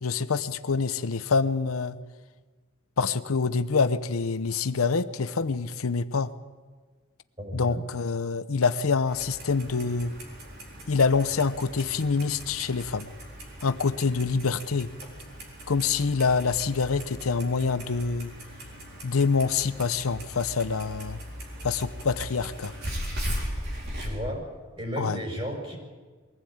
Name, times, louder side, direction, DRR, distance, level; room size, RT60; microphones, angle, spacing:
voice 1, 0.0-2.0 3.0-6.3 7.5-10.1 10.9-13.1 13.6-14.9 15.7-18.3 19.0-21.2 21.6-22.7 25.0-25.2, left 4 dB, 85° left, 12 dB, 0.7 m, -26 dB
voice 2, 7.4-7.8 24.0-24.4 24.8-25.8, equal, 25° right, 1 dB, 5.7 m, -33 dB
Clock, 9.1-24.1, equal, 50° right, 4.1 m, -39 dB
22.5 x 15.5 x 8.7 m, 1.4 s
head